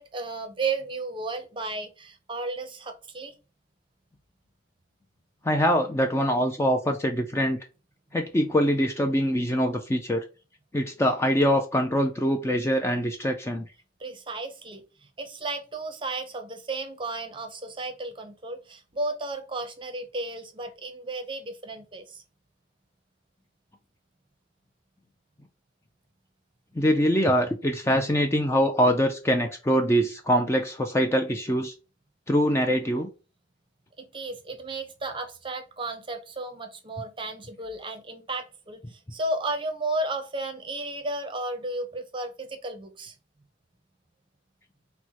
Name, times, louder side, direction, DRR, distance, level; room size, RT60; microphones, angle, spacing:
voice 1, 0.0-3.3 14.0-22.2 34.0-43.2, right 2 dB, 25° right, 0.6 m, -34 dB
voice 2, 5.4-7.6 8.1-10.3 10.7-13.7 26.8-31.7 32.3-33.1, equal, 15° left, 0.3 m, -23 dB
4.4 x 2.1 x 4.3 m
head